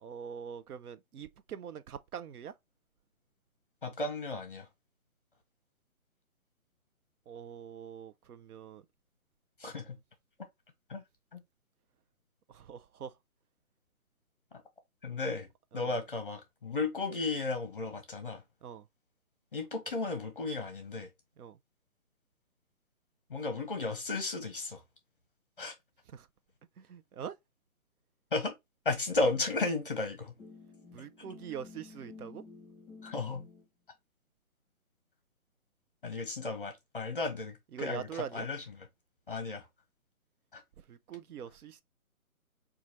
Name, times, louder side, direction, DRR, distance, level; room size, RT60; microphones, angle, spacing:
voice 1, 0.0-2.5 7.3-8.8 12.5-13.2 15.7-16.0 18.6-18.9 21.4-21.6 26.1-26.3 26.8-27.3 30.9-32.4 37.7-38.5 40.9-41.8, right 8 dB, 85° right, 0.6 m, -43 dB
voice 2, 3.8-4.7 9.6-10.0 10.9-11.0 11.3-11.4 15.0-15.5 15.7-18.4 19.5-21.1 23.3-24.8 25.6-25.7 28.3-28.5 28.8-30.3 33.0-33.4 36.0-38.9 39.3-39.7 40.5-40.6, left 3 dB, 35° left, 0.7 m, -34 dB
sound 1, 30.3-33.6, left 4 dB, 5° left, 1.3 m, -52 dB
3.0 x 2.4 x 3.9 m
hypercardioid pair, 175°, 44 cm